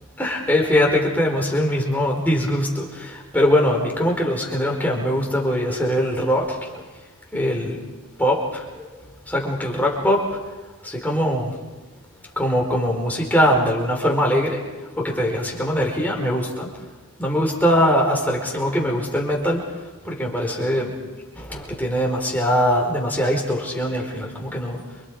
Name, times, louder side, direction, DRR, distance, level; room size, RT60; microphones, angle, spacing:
voice 1, 0.2-6.8 7.3-7.8 8.2-8.9 9.3-10.4 10.8-11.6 12.4-14.6 15.0-16.7 17.2-19.6 20.0-20.9 21.4-24.8, equal, 10° left, -1 dB, 4.5 m, -22 dB
29.0 x 25.5 x 5.0 m, 1.2 s
head